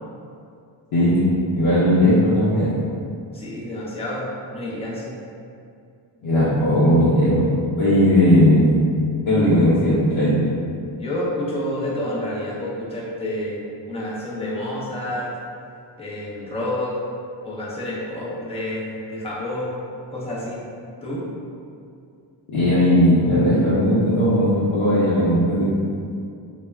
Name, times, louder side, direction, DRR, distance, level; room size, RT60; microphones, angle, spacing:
voice 1, 1.5-2.7 6.2-7.4 7.8-8.8 9.3-10.4 22.5-25.7, left 1 dB, 90° left, -11 dB, 0.7 m, -17 dB
voice 2, 3.3-4.3 4.5-5.1 11.0-13.6 13.9-15.3 16.0-17.0 17.4-19.8 20.1-20.6 21.0-21.2, left 1 dB, 15° left, -6 dB, 0.6 m, -29 dB
2.1 x 2.0 x 3.3 m, 2.4 s
cardioid pair, 80°, 47 cm